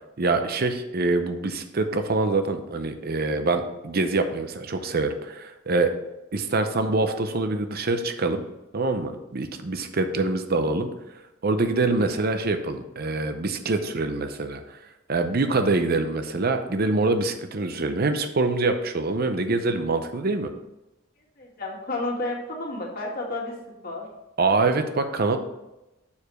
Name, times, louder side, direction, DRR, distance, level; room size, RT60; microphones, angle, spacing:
voice 1, 0.2-5.9 6.3-8.4 8.7-10.9 11.4-14.6 15.1-20.5 24.4-25.4, right 3 dB, 50° right, 8 dB, 0.7 m, -25 dB
voice 2, 21.4-23.6 23.8-24.1, left 2 dB, 50° left, -2 dB, 2.0 m, -31 dB
7.1 x 4.8 x 5.0 m, 0.95 s
head